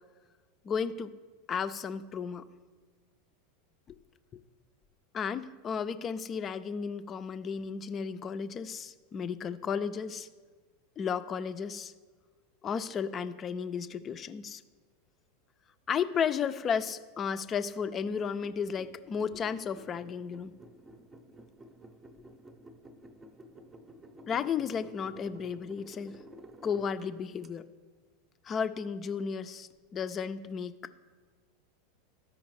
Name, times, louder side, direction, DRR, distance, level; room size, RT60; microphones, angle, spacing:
voice 1, 0.6-1.1 1.5-2.5 3.9-4.0 5.1-10.3 11.0-11.9 12.6-14.6 15.9-20.6 24.3-26.2 26.6-27.6 28.4-30.8, left 6 dB, 30° left, 12 dB, 0.4 m, -33 dB
sound 1, 18.0-27.5, right 1 dB, 20° right, 0.7 m, -52 dB
13.0 x 5.0 x 3.1 m, 1.4 s
hypercardioid pair, 90°, 0 cm